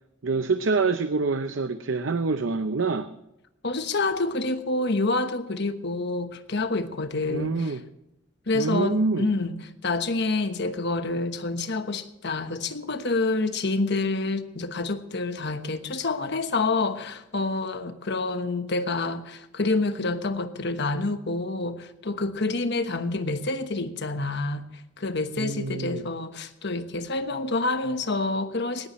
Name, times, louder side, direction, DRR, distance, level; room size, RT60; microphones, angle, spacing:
voice 1, 0.2-3.1 7.3-7.8 8.5-9.3 25.4-26.1, right 4 dB, 70° right, 0.7 m, -26 dB
voice 2, 3.6-7.7 8.5-9.5 9.8-24.6 25.0-28.9, left 3 dB, 60° left, 1.2 m, -27 dB
19.0 x 15.0 x 3.1 m
head